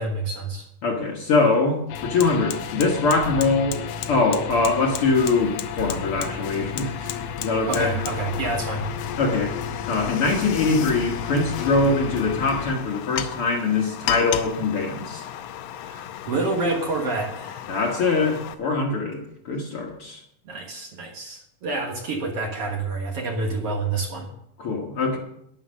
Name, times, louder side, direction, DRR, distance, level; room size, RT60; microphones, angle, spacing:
voice 1, 0.0-0.7 7.7-8.9 15.8-17.6 20.5-24.3, right 3 dB, 55° right, 1 dB, 2.0 m, -28 dB
voice 2, 0.8-3.8 4.1-8.0 9.2-9.6 9.9-15.3 17.7-20.2 24.6-25.2, left 3 dB, 50° left, 1 dB, 1.9 m, -23 dB
Fire, 1.1-1.2 1.5-18.5, left 11 dB, 90° left, 2.4 m, -36 dB
sound 1, 1.9-12.7, left 6 dB, 70° left, 1.6 m, -33 dB
11.5 x 10.0 x 6.4 m, 0.77 s
omnidirectional pair, 3.9 m